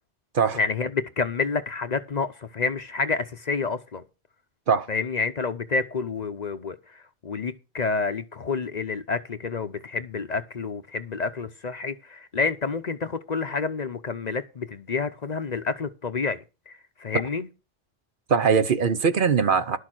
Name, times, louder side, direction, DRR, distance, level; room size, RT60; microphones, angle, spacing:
voice 1, 0.5-4.0 4.9-16.4 16.7-17.5, left 4 dB, 45° left, 0.8 m, -29 dB
voice 2, 18.3-19.8, right 6 dB, 55° right, 0.9 m, -21 dB
11.5 x 6.6 x 6.0 m
omnidirectional pair, 1.1 m